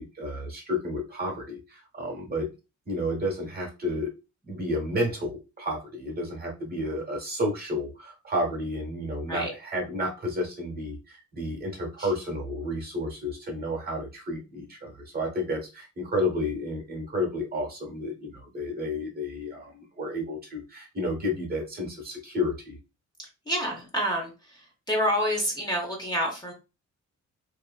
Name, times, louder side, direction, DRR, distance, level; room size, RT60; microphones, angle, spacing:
voice 1, 0.0-2.5 2.9-4.1 4.4-22.8, left 1 dB, 30° right, 0 dB, 1.0 m, -31 dB
voice 2, 23.5-24.3 24.9-26.5, equal, 15° left, -1 dB, 0.8 m, -27 dB
2.8 x 2.5 x 2.3 m, 0.29 s
cardioid pair, 115°, 30 cm